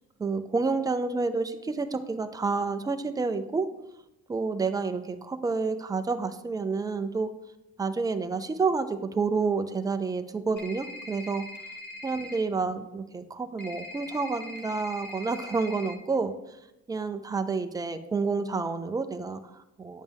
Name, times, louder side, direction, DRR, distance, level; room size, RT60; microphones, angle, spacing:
voice 1, 0.2-3.7 4.3-7.3 7.8-11.5 12.0-16.3 16.9-20.0, right 4 dB, 15° right, 8 dB, 0.4 m, -29 dB
sound 1, 10.6-12.4 13.6-15.9, left 2 dB, 35° left, 1.0 m, -42 dB
9.1 x 7.4 x 3.5 m, 0.92 s
cardioid pair, 175°, 29 cm